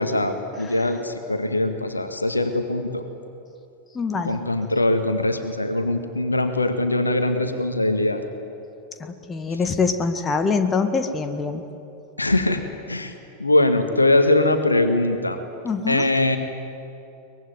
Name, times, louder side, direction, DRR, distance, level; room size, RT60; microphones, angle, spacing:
voice 1, 0.0-3.0 4.2-8.2 12.2-12.6 12.9-13.1 13.4-15.4 15.9-16.4, left 2 dB, 80° left, 7 dB, 1.8 m, -21 dB
voice 2, 3.9-4.4 9.0-11.6 15.6-16.1, left 4 dB, 20° left, 7 dB, 1.7 m, -24 dB
23.5 x 20.5 x 9.6 m, 2.8 s
figure-of-eight pair, 90°, 0 cm